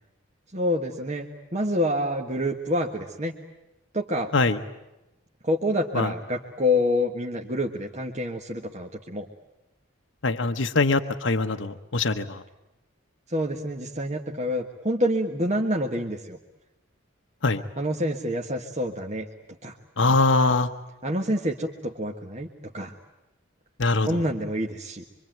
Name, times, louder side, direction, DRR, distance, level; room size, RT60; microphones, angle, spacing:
voice 1, 0.5-3.3 3.9-4.3 5.4-9.3 13.3-16.4 17.8-19.3 19.6-19.8 21.0-22.5 22.7-22.9 24.0-25.0, left 1 dB, 35° right, 1 dB, 1.5 m, -27 dB
voice 2, 10.2-12.4 17.4-17.6 20.0-20.7 23.8-24.1, left 3 dB, 70° left, 6 dB, 1.1 m, -22 dB
25.5 x 24.5 x 9.3 m, 0.96 s
head